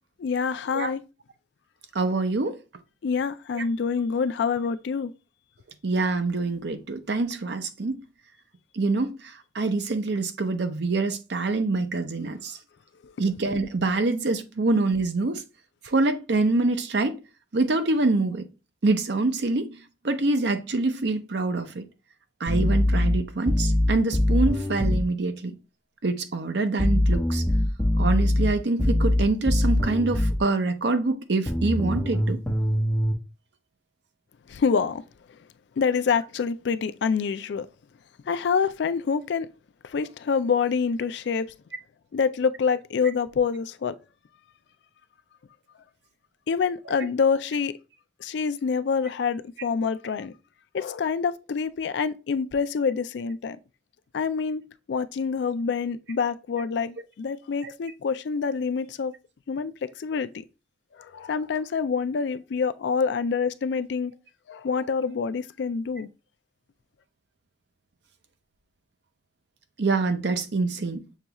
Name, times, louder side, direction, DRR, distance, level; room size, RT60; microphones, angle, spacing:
voice 1, 0.2-1.0 3.0-5.1 13.0-13.1 34.5-35.0 35.8-37.7 38.3-39.5 39.8-41.5 42.1-44.0 46.5-47.7 48.2-50.3 50.7-53.6 54.1-54.6 54.9-59.1 59.5-60.3 61.0-64.1 64.5-66.1, left 5 dB, 65° left, 0.3 m, -26 dB
voice 2, 1.9-2.6 3.5-3.6 5.8-8.0 8.7-9.2 9.5-12.6 13.2-15.4 15.8-17.2 17.5-18.5 18.8-19.8 20.0-21.9 22.4-25.5 26.0-27.4 28.0-32.4 57.6-57.7 69.8-71.0, right 3 dB, 65° right, 0.6 m, -25 dB
sound 1, 22.5-25.1 26.8-30.4 31.5-33.1, left 1 dB, 5° left, 0.9 m, -23 dB
6.5 x 2.3 x 2.9 m
head